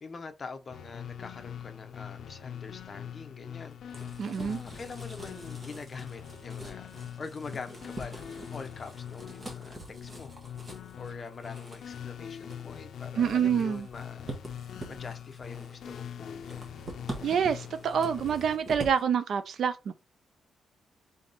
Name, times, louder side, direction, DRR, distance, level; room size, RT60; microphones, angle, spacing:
voice 1, 0.0-3.8 4.2-10.3 11.0-14.3 14.9-16.6, left 4 dB, 35° left, 0.8 m, -44 dB
sound 1, 0.7-18.6, left 9 dB, 70° left, 0.5 m, -43 dB
sound 2, 3.6-19.0, right 1 dB, 30° right, 1.3 m, -45 dB
voice 2, 4.2-4.6 13.2-13.9 17.2-19.9, right 7 dB, 65° right, 0.5 m, -27 dB
3.8 x 3.5 x 4.0 m
cardioid pair, 130°, 0 cm